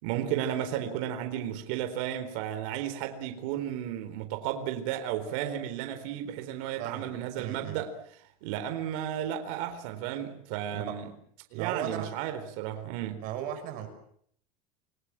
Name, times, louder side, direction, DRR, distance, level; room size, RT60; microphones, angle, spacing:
voice 1, 0.0-7.9 8.4-11.0 11.5-13.2, right 10 dB, 65° right, 4.1 m, -33 dB
voice 2, 6.8-7.8 10.7-11.0 11.5-12.1 13.2-13.9, right 10 dB, 50° right, 6.6 m, -36 dB
29.0 x 21.5 x 7.6 m
cardioid pair, 165°, 18 cm